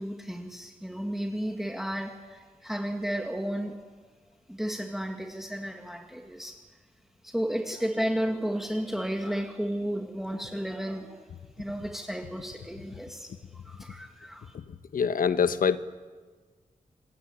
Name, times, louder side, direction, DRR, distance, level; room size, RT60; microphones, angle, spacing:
voice 1, 0.0-3.8 4.5-6.6 7.2-11.3 11.6-14.6, equal, ahead, 2.0 m, -33 dB
voice 2, 14.9-15.8, left 6 dB, 75° left, 1.2 m, -24 dB
27.5 x 20.0 x 9.9 m
wide cardioid pair, 110°, 15 cm